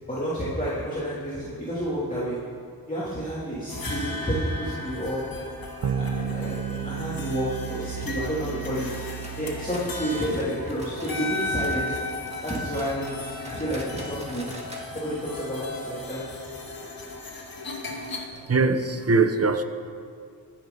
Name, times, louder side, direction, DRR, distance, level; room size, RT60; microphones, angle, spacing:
voice 1, 0.1-2.4 2.9-5.2 5.9-8.9 9.3-12.0 12.4-13.1 13.4-14.6 14.9-16.2, equal, 20° left, -10 dB, 3.0 m, -30 dB
sound 1, 3.7-18.3, left 2 dB, 60° left, 1.7 m, -36 dB
sound 2, 5.8-10.6, right 8 dB, 80° right, 0.8 m, -33 dB
sound 3, 9.0-11.3 11.6-14.9 15.2-15.3 15.7-15.8 16.3-16.4, right 1 dB, 15° right, 2.1 m, -45 dB
voice 2, 18.5-19.6, right 4 dB, 35° right, 8 dB, 1.0 m, -21 dB
23.5 x 10.0 x 4.1 m, 2.3 s
wide cardioid pair, 100°, 40 cm